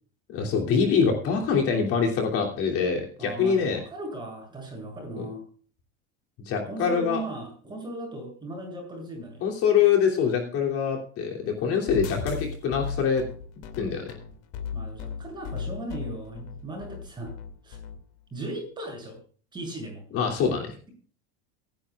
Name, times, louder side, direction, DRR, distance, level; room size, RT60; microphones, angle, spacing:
voice 1, 0.3-3.8 5.2-5.3 6.4-7.2 9.4-13.2 13.8-14.1 20.1-20.7, left 6 dB, 40° left, 0 dB, 3.0 m, -24 dB
voice 2, 3.2-5.4 6.7-9.4 12.1-12.4 14.7-17.3 17.6-17.8 18.3-19.2 19.5-20.0, right 1 dB, 10° right, 0 dB, 7.7 m, -37 dB
sound 1, 11.9-18.0, left 6 dB, 65° left, 2.5 m, -36 dB
24.5 x 11.0 x 2.4 m, 0.43 s
supercardioid pair, 160°, 35 cm